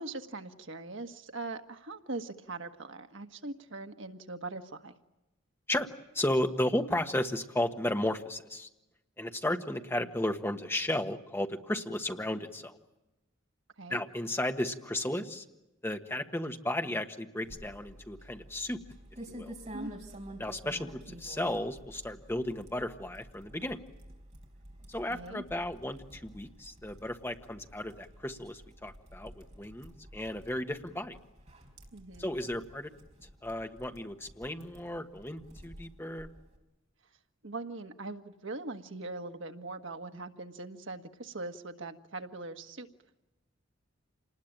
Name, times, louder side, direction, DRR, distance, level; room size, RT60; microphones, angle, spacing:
voice 1, 0.0-4.9 13.8-14.0 19.7-20.0 25.1-25.4 31.9-32.3 37.4-42.9, right 2 dB, 75° right, 6 dB, 1.5 m, -41 dB
voice 2, 6.1-8.7 9.2-12.8 13.9-15.4 15.8-18.8 19.3-19.5 20.4-23.8 24.9-31.2 32.2-32.9 33.4-36.3, left 1 dB, 10° left, 5 dB, 1.4 m, -34 dB
Keyboard Typing, 17.4-36.6, equal, 35° right, 4.5 m, -50 dB
27.5 x 20.0 x 8.9 m, 1.0 s
head